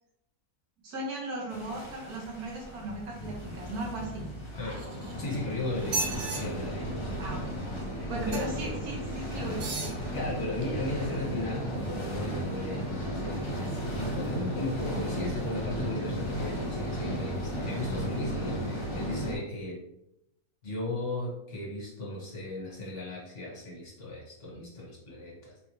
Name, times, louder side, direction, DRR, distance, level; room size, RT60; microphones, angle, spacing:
voice 1, 0.8-4.2 7.2-7.4 8.1-9.9 24.5-24.7, right 1 dB, 85° right, -2 dB, 1.5 m, -37 dB
sound 1, 1.5-19.4, equal, 35° left, 0.4 m, -35 dB
sound 2, 4.7-5.4 5.8-6.4 8.3-8.7 9.5-10.0 10.6-10.7, right 3 dB, 70° right, 1.1 m, -34 dB
voice 2, 5.2-6.1 6.4-6.9 7.9-8.5 10.1-19.8 20.6-25.5, left 2 dB, 55° left, -5 dB, 1.5 m, -36 dB
3.9 x 2.3 x 3.1 m, 0.82 s
omnidirectional pair, 1.6 m